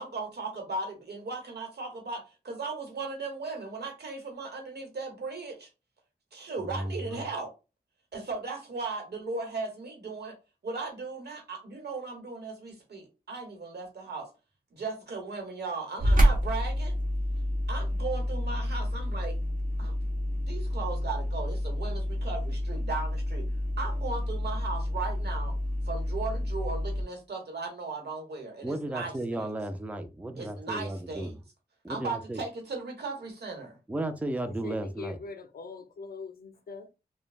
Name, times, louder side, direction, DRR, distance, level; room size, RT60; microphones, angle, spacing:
voice 1, 0.0-5.7 6.3-7.5 8.1-10.4 10.6-14.3 14.7-17.0 17.7-19.4 19.8-19.9 20.5-23.5 23.8-25.6 25.8-29.5 30.4-31.3 31.9-33.8, right 3 dB, 80° right, 1.0 m, -37 dB
voice 2, 6.6-7.3 28.6-31.3 31.8-32.4 33.9-35.2, right 1 dB, 10° right, 0.4 m, -34 dB
sound 1, 16.0-27.0, equal, 55° right, 0.8 m, -29 dB
voice 3, 34.5-37.0, left 4 dB, 65° left, 0.4 m, -42 dB
3.1 x 2.1 x 2.4 m
wide cardioid pair, 90°, 17 cm